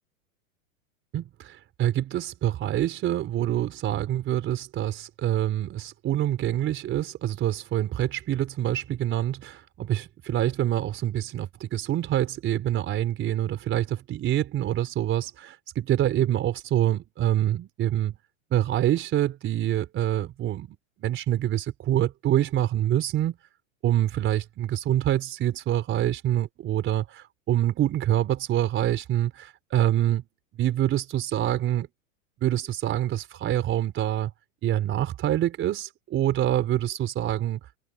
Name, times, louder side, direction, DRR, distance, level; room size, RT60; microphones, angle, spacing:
voice 1, 1.1-18.2 18.5-23.4 23.8-30.2 30.5-31.9 32.4-34.3 34.6-37.6, right 12 dB, 30° right, 4.2 m, -26 dB
hypercardioid pair, 135°, 41 cm